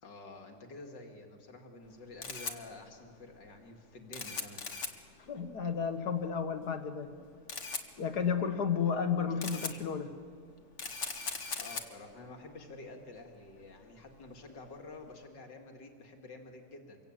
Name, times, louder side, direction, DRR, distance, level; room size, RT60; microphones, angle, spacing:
voice 1, 0.0-4.6 11.6-17.0, left 2 dB, 80° left, 3 dB, 3.1 m, -49 dB
Camera, 1.8-15.2, left 4 dB, 45° left, 1.9 m, -43 dB
voice 2, 5.3-7.1 8.0-10.1, left 6 dB, 65° left, 7 dB, 2.2 m, -32 dB
25.5 x 23.0 x 9.0 m, 2.2 s
omnidirectional pair, 1.9 m